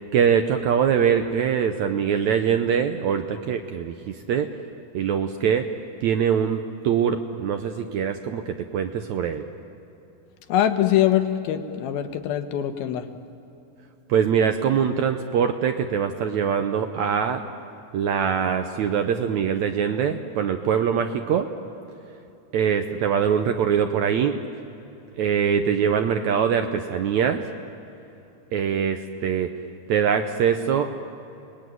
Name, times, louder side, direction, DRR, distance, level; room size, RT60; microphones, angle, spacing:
voice 1, 0.1-4.5 4.9-5.7 6.0-9.4 14.1-17.4 17.9-21.5 22.5-24.4 25.2-27.4 28.5-29.5 29.9-31.0, right 7 dB, 70° right, 7 dB, 1.8 m, -23 dB
voice 2, 10.5-13.0, left 11 dB, 90° left, 7 dB, 3.1 m, -23 dB
29.5 x 20.5 x 9.4 m, 2.9 s
omnidirectional pair, 4.2 m